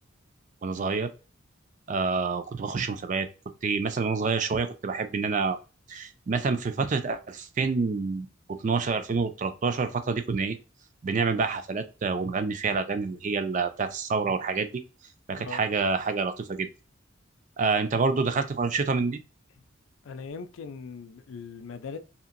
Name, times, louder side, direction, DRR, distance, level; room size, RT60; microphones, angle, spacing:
voice 1, 0.6-1.1 1.9-3.3 3.6-5.6 5.9-10.6 11.0-14.7 15.3-16.7 17.6-19.2, right 4 dB, 40° right, 0.3 m, -27 dB
voice 2, 20.0-22.0, left 5 dB, 75° left, 0.4 m, -40 dB
2.8 x 2.5 x 2.5 m
head